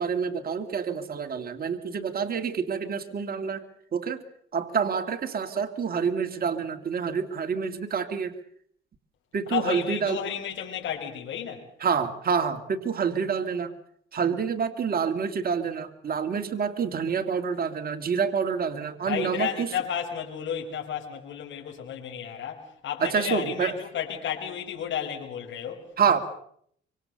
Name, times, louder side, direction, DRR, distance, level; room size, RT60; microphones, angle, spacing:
voice 1, 0.0-3.6 3.9-4.2 4.5-8.3 9.3-10.2 11.8-13.7 14.1-19.7 23.0-23.7 26.0-26.2, right 6 dB, 50° right, 6 dB, 2.4 m, -27 dB
voice 2, 9.5-11.7 19.1-25.9, left 8 dB, 70° left, 1 dB, 5.5 m, -32 dB
25.5 x 24.5 x 6.8 m, 0.65 s
cardioid pair, 90°, 20 cm